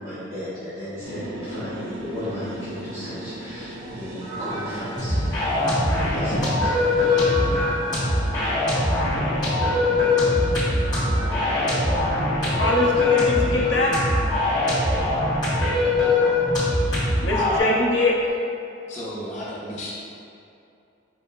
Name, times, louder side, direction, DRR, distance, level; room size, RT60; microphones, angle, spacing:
voice 1, 0.0-7.6, equal, 60° right, -18 dB, 1.4 m, -34 dB
sound 1, 1.0-17.5, right 1 dB, 80° right, 0.6 m, -38 dB
sound 2, 3.8-18.3, right 1 dB, 35° right, 0.7 m, -37 dB
sound 3, 4.9-17.6, left 2 dB, 20° left, 1.1 m, -22 dB
voice 2, 12.6-14.0 17.2-18.1, left 2 dB, 70° left, -3 dB, 0.6 m, -23 dB
voice 3, 18.9-20.0, equal, 40° left, -7 dB, 0.9 m, -33 dB
5.4 x 2.9 x 2.2 m, 2.6 s
head